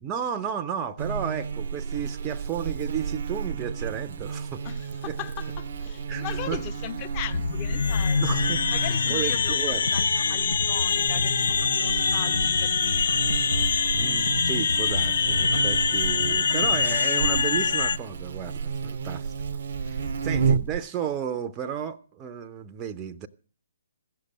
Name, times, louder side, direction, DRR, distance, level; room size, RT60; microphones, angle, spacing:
voice 1, 0.0-4.6 5.0-5.2 6.1-6.6 8.2-9.9 13.9-19.3 19.9-23.3, right 8 dB, 20° right, 0.7 m, -33 dB
Buzz, 1.0-20.8, right 6 dB, 50° right, 0.7 m, -32 dB
voice 2, 4.6-13.2 15.5-15.7 16.3-16.4 17.3-17.5 19.8-20.3, left 10 dB, 30° left, 1.0 m, -39 dB
sound 1, 7.3-18.0, left 5 dB, 60° left, 0.6 m, -24 dB
sound 2, 9.3-17.2, left 2 dB, 75° left, 1.0 m, -34 dB
15.5 x 6.7 x 8.6 m
figure-of-eight pair, 130°, 0 cm